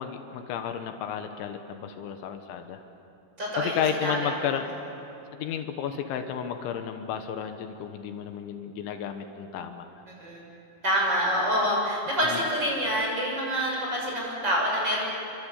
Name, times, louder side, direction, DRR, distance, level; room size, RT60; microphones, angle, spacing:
voice 1, 0.0-2.8 3.6-4.7 5.3-9.9 12.3-12.4, left 8 dB, 80° left, 6 dB, 3.5 m, -32 dB
voice 2, 3.4-4.5 10.1-10.4 10.8-15.1, equal, 20° right, -2 dB, 6.9 m, -27 dB
29.5 x 23.5 x 8.3 m, 2.7 s
omnidirectional pair, 5.4 m